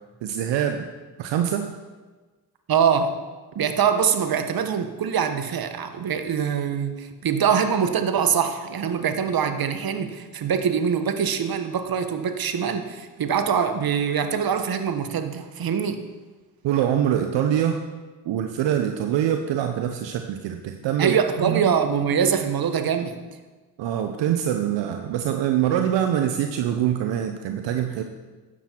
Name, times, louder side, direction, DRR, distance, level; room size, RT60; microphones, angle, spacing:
voice 1, 0.2-0.9 1.2-1.7 16.6-17.8 18.3-21.1 21.4-21.7 23.8-28.0, right 10 dB, 75° right, 6 dB, 0.9 m, -24 dB
voice 2, 2.7-3.2 3.5-16.0 21.0-23.2, right 7 dB, 55° right, 8 dB, 1.4 m, -23 dB
13.5 x 9.2 x 4.5 m, 1.3 s
supercardioid pair, 55°, 44 cm